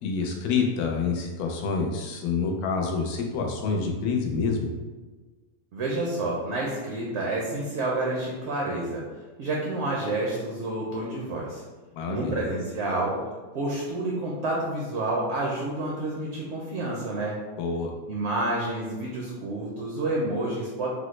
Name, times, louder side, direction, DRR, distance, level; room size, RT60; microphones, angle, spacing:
voice 1, 0.0-4.7 12.0-12.4 17.6-17.9, left 5 dB, 80° left, 2 dB, 1.1 m, -27 dB
voice 2, 5.7-9.0 9.4-11.6 12.1-13.2 13.5-17.4 18.1-20.9, right 2 dB, 65° right, -3 dB, 0.7 m, -29 dB
3.5 x 2.0 x 3.1 m, 1.3 s
omnidirectional pair, 1.6 m